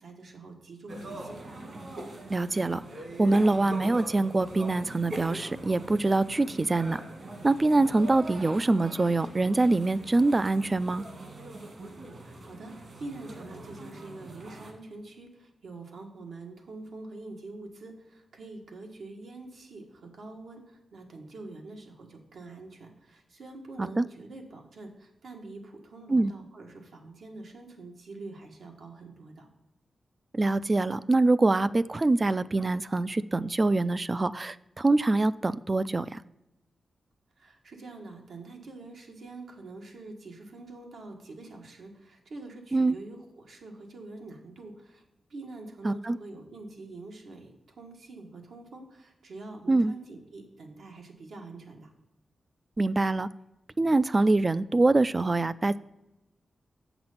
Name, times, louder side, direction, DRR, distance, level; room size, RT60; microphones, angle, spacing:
voice 1, 0.0-1.3 12.2-29.5 37.4-45.0 45.3-51.9, right 2 dB, 80° right, 2 dB, 1.6 m, -45 dB
sound 1, 0.9-14.7, right 1 dB, 55° right, 1.9 m, -42 dB
voice 2, 2.3-2.8 3.2-7.0 7.4-11.0 23.8-24.0 26.1-26.3 30.3-36.2 42.7-42.9 45.8-46.2 49.7-49.9 52.8-53.3 53.8-55.8, right 2 dB, 25° right, 17 dB, 0.3 m, -24 dB
7.7 x 6.0 x 5.7 m, 0.93 s
wide cardioid pair, 115°, 0 cm